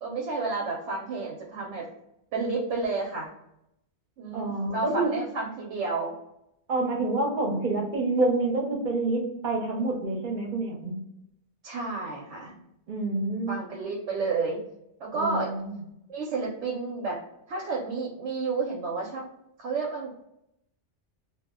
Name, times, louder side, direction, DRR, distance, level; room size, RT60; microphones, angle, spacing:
voice 1, 0.0-1.9 2.3-3.3 4.2-6.1 11.6-12.5 13.5-14.6 15.0-15.5 16.1-17.2 17.5-19.3 19.6-20.1, right 3 dB, 85° right, -1 dB, 0.9 m, -31 dB
voice 2, 4.3-5.1 6.7-11.0 12.9-13.6 15.1-15.7, right 2 dB, 50° right, 0 dB, 0.8 m, -27 dB
2.3 x 2.1 x 3.5 m, 0.81 s
omnidirectional pair, 1.2 m